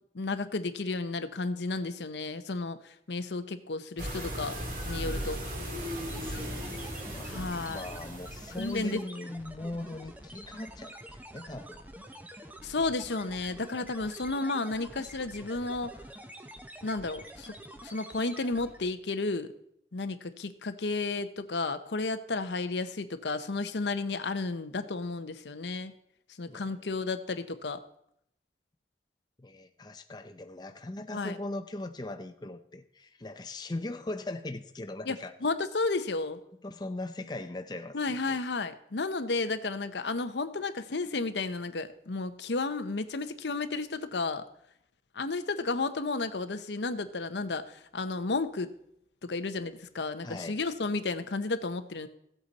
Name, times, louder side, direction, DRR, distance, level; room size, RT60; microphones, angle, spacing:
voice 1, 0.1-4.6 4.8-5.4 7.2-7.9 8.6-9.0 12.6-16.0 16.8-17.5 17.8-19.5 19.9-25.9 26.4-27.8 31.1-31.4 35.1-35.2 35.4-36.4 37.9-44.4 45.1-48.7 49.2-52.1, left 3 dB, 80° left, 0.8 m, -32 dB
sound 1, 4.0-8.9, equal, 50° right, 2.3 m, -37 dB
sound 2, 5.8-19.0, right 1 dB, 10° right, 0.8 m, -47 dB
voice 2, 6.0-11.8 26.5-26.7 29.4-35.3 36.5-38.4 50.2-50.6, left 2 dB, 25° left, 0.6 m, -40 dB
15.5 x 8.2 x 4.1 m
head